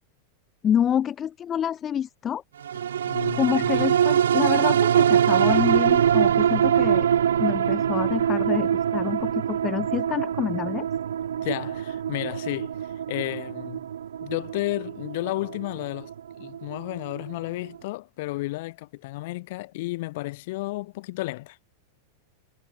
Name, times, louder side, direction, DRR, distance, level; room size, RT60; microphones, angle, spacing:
voice 1, 0.6-2.4 3.4-7.1 7.4-10.9, left 9 dB, 25° left, 0.4 m, -27 dB
sound 1, 2.6-17.3 17.7-17.8, right 9 dB, 65° right, 0.7 m, -24 dB
voice 2, 3.1-3.9 11.4-12.8 13.1-13.9 14.2-16.1 16.4-21.6, left 20 dB, 50° left, 2.2 m, -32 dB
figure-of-eight pair, 90°, 0 cm